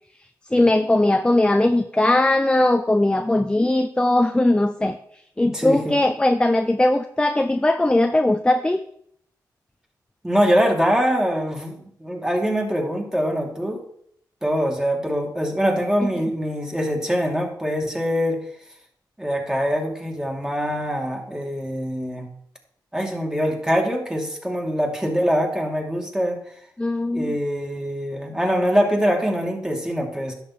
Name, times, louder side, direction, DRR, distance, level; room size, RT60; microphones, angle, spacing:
voice 1, 0.5-5.0 5.4-8.8 26.8-27.4, left 1 dB, 10° left, 8 dB, 0.6 m, -19 dB
voice 2, 5.4-6.0 10.2-13.8 14.4-18.4 19.2-22.3 22.9-26.4 27.1-30.3, equal, 10° right, 1 dB, 2.5 m, -23 dB
10.5 x 7.0 x 4.3 m, 0.68 s
cardioid pair, 55°, 8 cm